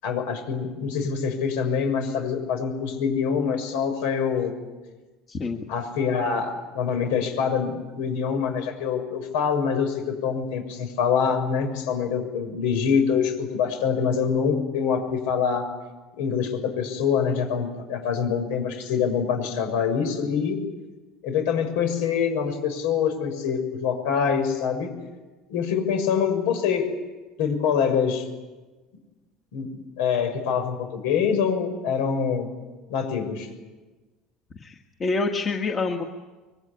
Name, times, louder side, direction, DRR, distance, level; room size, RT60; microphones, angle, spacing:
voice 1, 0.0-4.5 5.7-15.7 16.2-20.6 21.2-24.9 25.5-26.9 27.4-28.2 29.5-29.7 30.0-32.5 32.9-33.5, left 6 dB, 85° left, 6 dB, 6.7 m, -25 dB
voice 2, 5.3-5.6 34.6-36.0, left 3 dB, 25° left, 3 dB, 1.7 m, -27 dB
25.5 x 23.5 x 10.0 m, 1.2 s
cardioid pair, 155°, 0 cm